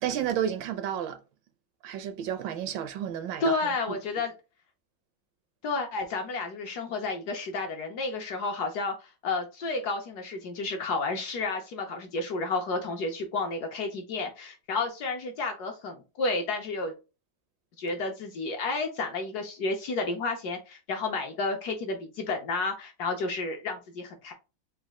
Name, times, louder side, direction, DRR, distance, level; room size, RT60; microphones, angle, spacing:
voice 1, 0.0-1.2 1.8-3.6 3.9-4.0, right 9 dB, 75° right, 1.2 m, -31 dB
voice 2, 3.4-4.3 5.6-16.9 17.8-24.3, left 3 dB, 65° left, 1.0 m, -31 dB
4.1 x 2.3 x 3.5 m
omnidirectional pair, 2.2 m